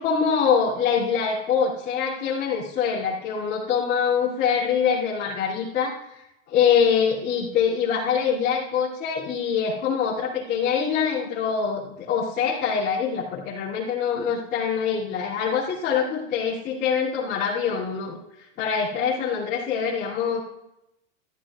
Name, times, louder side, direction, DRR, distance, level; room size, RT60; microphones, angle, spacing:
voice 1, 0.0-6.0 6.5-18.2 18.6-20.4, left 7 dB, 25° left, -10 dB, 2.8 m, -24 dB
14.5 x 13.5 x 2.5 m, 0.86 s
supercardioid pair, 165°, 39 cm